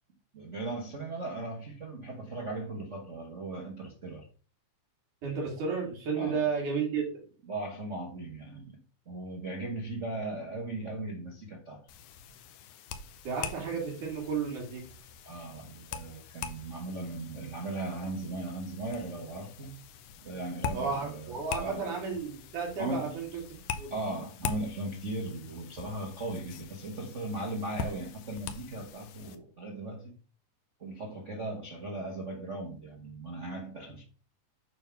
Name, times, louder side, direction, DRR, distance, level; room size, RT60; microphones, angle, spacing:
voice 1, 0.3-4.2 6.2-6.5 7.5-8.7 9.1-11.9 15.2-19.8 20.2-21.9 22.8-23.2 23.9-30.2 30.8-34.0, right 2 dB, 60° right, -1 dB, 0.7 m, -38 dB
voice 2, 5.2-7.1 13.3-14.9 20.7-23.9, right 5 dB, 80° right, -2 dB, 4.0 m, -33 dB
sound 1, 11.9-29.4, left 6 dB, 80° left, 2.1 m, -43 dB
8.9 x 3.8 x 5.8 m, 0.40 s
omnidirectional pair, 3.6 m